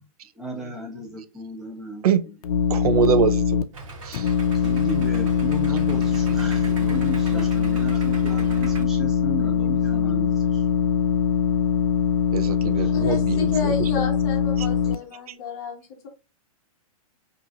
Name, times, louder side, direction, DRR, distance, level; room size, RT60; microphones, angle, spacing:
voice 1, 0.4-2.0 4.6-10.6 12.8-13.5, right 1 dB, ahead, 0.4 m, -35 dB
sound 1, 2.4-3.6 4.1-14.9, left 7 dB, 85° left, 0.4 m, -22 dB
voice 2, 2.7-3.6 4.0-4.3 12.3-13.9 14.6-14.7, right 7 dB, 80° right, 0.5 m, -24 dB
Idling, 3.7-8.8, right 2 dB, 60° right, 1.0 m, -39 dB
voice 3, 12.9-16.1, left 4 dB, 30° left, 0.8 m, -31 dB
2.9 x 2.5 x 2.4 m
hypercardioid pair, 170°, 19 cm